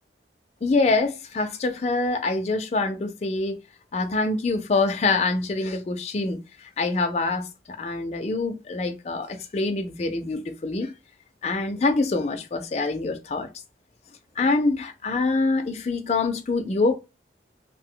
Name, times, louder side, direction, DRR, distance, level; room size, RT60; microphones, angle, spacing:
voice 1, 0.6-3.6 3.9-10.9 11.4-13.5 14.4-17.0, left 3 dB, 35° left, 0.4 m, -25 dB
2.5 x 2.0 x 3.6 m
head